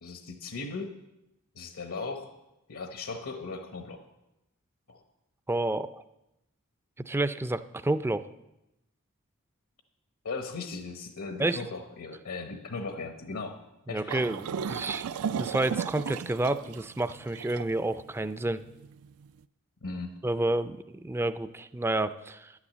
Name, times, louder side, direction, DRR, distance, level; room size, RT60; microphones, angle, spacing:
voice 1, 0.0-0.9 1.5-2.3 2.7-4.0 4.9-5.0 10.2-13.6 13.9-14.2 19.8-20.1, left 3 dB, 75° left, 6 dB, 1.1 m, -37 dB
voice 2, 5.5-6.0 7.0-8.3 11.4-11.6 13.9-15.0 15.4-18.6 20.2-22.5, right 2 dB, 10° right, 12 dB, 0.4 m, -29 dB
sound 1, 14.1-19.3, right 7 dB, 80° right, 0.4 m, -35 dB
11.0 x 9.7 x 7.3 m, 0.91 s
head